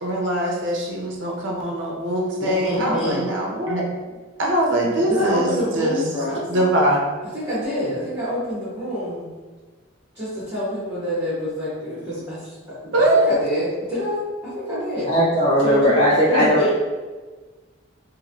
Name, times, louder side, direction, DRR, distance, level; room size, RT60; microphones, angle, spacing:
voice 1, 0.0-3.9 4.4-6.0 6.5-7.1 12.9-13.2, right 1 dB, 65° right, -2 dB, 0.6 m, -22 dB
voice 2, 2.4-3.3 5.0-6.5 7.3-9.3 10.1-15.1 15.6-16.8, equal, 15° right, -13 dB, 1.1 m, -26 dB
voice 3, 15.1-16.8, equal, 30° left, -11 dB, 1.1 m, -18 dB
3.0 x 2.6 x 2.6 m, 1.3 s
head